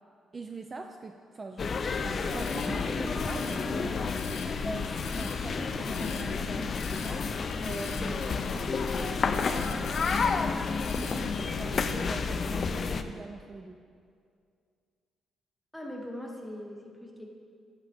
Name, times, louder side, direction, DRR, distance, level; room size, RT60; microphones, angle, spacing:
voice 1, 0.3-10.5 10.9-13.8, right 3 dB, 30° right, 5 dB, 0.3 m, -43 dB
sound 1, 1.6-13.0, left 5 dB, 45° left, 0.3 m, -30 dB
sound 2, 2.0-11.9, left 5 dB, 75° left, 0.7 m, -43 dB
voice 2, 15.7-17.3, left 1 dB, 5° left, -1 dB, 1.1 m, -40 dB
8.7 x 5.9 x 3.4 m, 2.3 s
cardioid pair, 90°, 0 cm